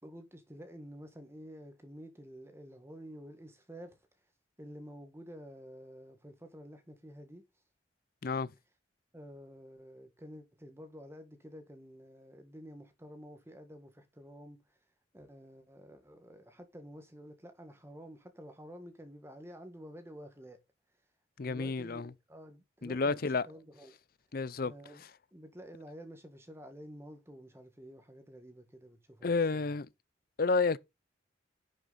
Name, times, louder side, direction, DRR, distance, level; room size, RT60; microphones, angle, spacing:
voice 1, 0.0-4.0 4.6-7.4 9.1-14.8 15.1-20.6 21.4-24.0 24.6-25.0 25.3-29.8, equal, 15° right, 1.6 m, -50 dB
voice 2, 21.4-22.1 22.8-23.5 24.3-24.7 29.2-29.9 30.4-30.8, left 4 dB, 50° left, 0.5 m, -30 dB
10.5 x 6.1 x 4.1 m
head